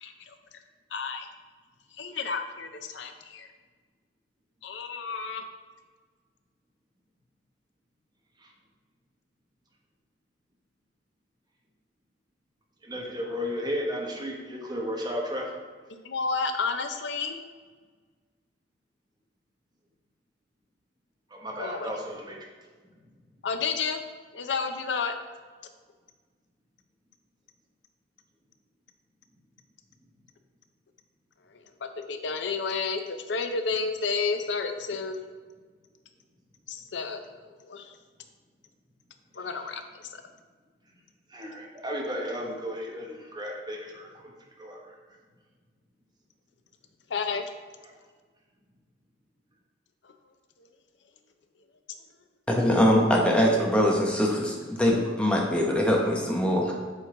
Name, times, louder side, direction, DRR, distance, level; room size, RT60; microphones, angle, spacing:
voice 1, 0.0-0.4 0.9-1.3 2.0-3.5 4.6-5.4 15.9-17.4 21.6-21.9 23.4-24.0 24.3-25.1 31.8-35.3 36.7-38.0 39.3-40.2 47.1-47.5 50.0-50.1 53.5-53.6, left 4 dB, 85° left, 7 dB, 0.6 m, -31 dB
voice 2, 12.8-15.5 21.3-22.4 41.3-44.3 44.6-44.9, equal, 25° right, -1 dB, 1.0 m, -34 dB
voice 3, 52.6-56.8, equal, 5° left, -1 dB, 1.0 m, -23 dB
7.8 x 3.8 x 3.8 m, 1.5 s
head